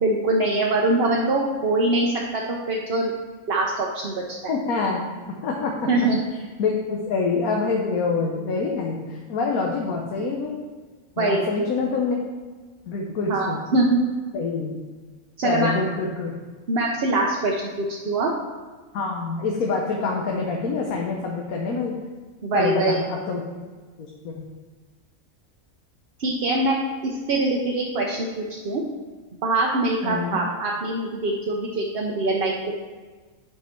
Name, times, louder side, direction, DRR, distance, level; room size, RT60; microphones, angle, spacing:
voice 1, 0.0-3.1 3.5-4.2 5.8-6.2 11.2-11.5 13.3-14.0 15.4-15.7 16.7-18.3 22.4-23.0 26.2-28.9 29.4-32.7, right 2 dB, 50° right, -2 dB, 0.9 m, -23 dB
voice 2, 4.5-5.1 5.4-5.9 6.6-10.6 11.2-12.2 12.9-13.6 14.3-14.8 15.4-16.3 18.9-21.9 22.5-23.4 24.0-24.4 30.0-30.4, left 4 dB, 90° left, 0 dB, 1.3 m, -26 dB
7.9 x 4.9 x 4.4 m, 1.4 s
omnidirectional pair, 1.5 m